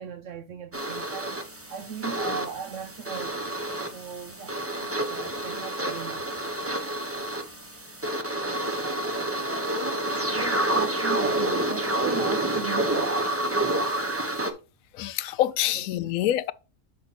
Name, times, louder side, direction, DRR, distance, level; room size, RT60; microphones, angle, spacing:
voice 1, 0.0-1.4 1.7-3.5 3.9-6.4 10.3-13.3 15.7-16.2, right 6 dB, 65° right, 0.9 m, -38 dB
sound 1, 0.7-14.5, right 1 dB, 10° right, 0.7 m, -28 dB
voice 2, 15.0-16.5, left 12 dB, 75° left, 1.0 m, -26 dB
6.6 x 5.5 x 4.1 m
omnidirectional pair, 1.5 m